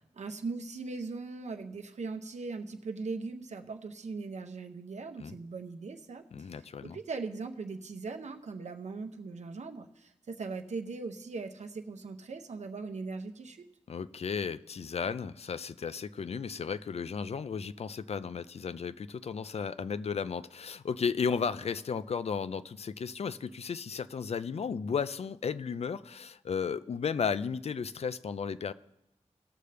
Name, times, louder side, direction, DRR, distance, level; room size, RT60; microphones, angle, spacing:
voice 1, 0.2-6.3 6.6-13.7, right 4 dB, 75° right, 0.7 m, -39 dB
voice 2, 6.3-7.0 13.9-28.7, left 6 dB, 60° left, 0.4 m, -34 dB
18.0 x 6.7 x 3.3 m
wide cardioid pair, 115°, 12 cm